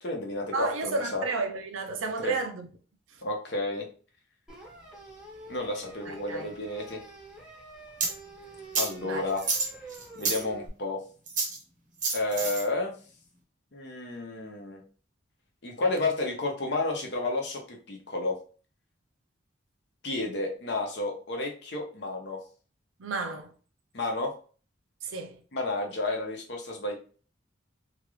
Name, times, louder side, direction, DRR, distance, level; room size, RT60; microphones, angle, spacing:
voice 1, 0.0-1.2 2.2-2.4 3.2-3.9 5.5-7.0 8.8-9.5 10.1-11.0 12.1-13.0 13.7-14.8 15.6-18.4 20.0-22.4 23.9-24.3 25.5-26.9, left 2 dB, 55° left, 0.8 m, -31 dB
voice 2, 0.5-2.7 6.1-6.5 9.0-9.2 23.0-23.5 25.0-25.4, right 3 dB, 85° right, 0.6 m, -32 dB
sound 1, 4.5-10.7, right 2 dB, 5° right, 0.7 m, -47 dB
sound 2, 8.0-8.1 8.7-8.9 9.4-10.4 11.3-11.6 12.0-12.6, right 4 dB, 40° right, 0.8 m, -29 dB
2.9 x 2.4 x 3.0 m
head